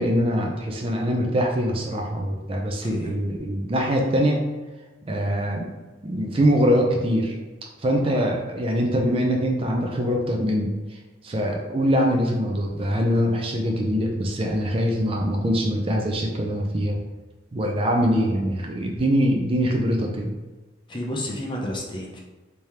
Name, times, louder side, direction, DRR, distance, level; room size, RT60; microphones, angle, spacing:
voice 1, 0.0-4.4 5.1-5.7 6.0-7.3 7.8-10.7 11.2-17.0 17.5-20.3, equal, 30° right, 1 dB, 0.4 m, -23 dB
voice 2, 2.8-3.1 20.9-22.2, left 1 dB, 25° left, -1 dB, 0.5 m, -31 dB
3.4 x 3.3 x 2.8 m, 1.2 s
head